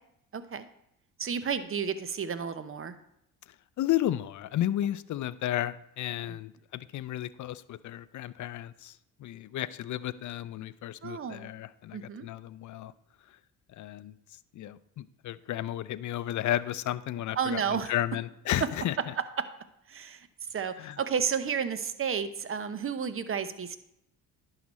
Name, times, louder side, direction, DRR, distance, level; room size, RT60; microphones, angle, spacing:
voice 1, 0.3-0.7 1.2-2.9 6.3-6.4 11.0-11.5 11.9-12.3 17.4-17.9 19.4-19.5 19.9-23.8, right 7 dB, 35° right, 12 dB, 0.8 m, -32 dB
voice 2, 3.8-8.9 9.2-12.9 13.7-14.1 14.5-19.1 20.8-21.0, left 13 dB, 50° left, 16 dB, 0.5 m, -33 dB
11.0 x 4.9 x 4.2 m, 0.77 s
supercardioid pair, 70°, 38 cm